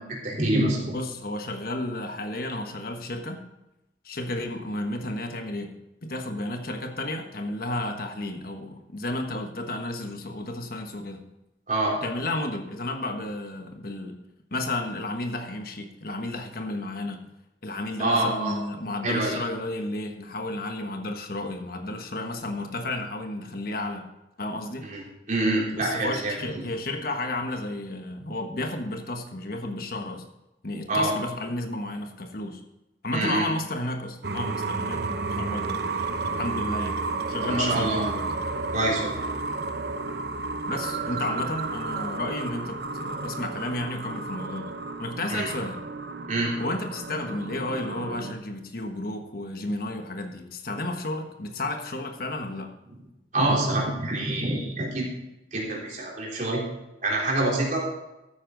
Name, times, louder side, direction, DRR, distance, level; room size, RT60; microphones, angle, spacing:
voice 1, 0.2-1.0 11.7-12.0 18.0-18.5 19.0-19.4 24.9-25.0 25.3-26.4 30.9-31.1 33.1-33.5 37.4-38.0 38.7-39.2 45.3-45.5 46.3-46.5 53.3-55.1 55.5-56.6 57.0-57.8, right 2 dB, 45° right, -3 dB, 3.7 m, -26 dB
voice 2, 0.9-3.4 4.0-5.7 6.0-11.2 12.0-14.2 14.5-17.2 17.6-24.1 24.4-24.9 25.8-30.3 30.6-32.6 33.0-35.9 36.4-37.0 37.3-38.3 40.7-45.8 46.6-52.7, left 1 dB, 50° left, 5 dB, 1.2 m, -32 dB
sound 1, 34.2-48.3, right 3 dB, 60° right, 0.9 m, -32 dB
13.0 x 9.6 x 3.9 m, 0.93 s
head